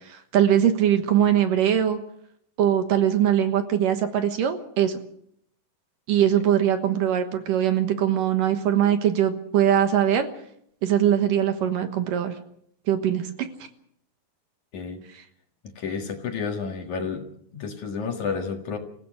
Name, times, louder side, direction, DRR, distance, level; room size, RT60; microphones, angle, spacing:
voice 1, 0.1-2.0 2.6-5.0 6.1-10.3 10.8-12.4 12.9-13.3, right 10 dB, 65° right, 8 dB, 2.7 m, -21 dB
voice 2, 15.8-17.2 17.5-18.8, left 5 dB, 55° left, 4 dB, 2.9 m, -30 dB
27.0 x 16.0 x 6.4 m, 0.69 s
omnidirectional pair, 4.5 m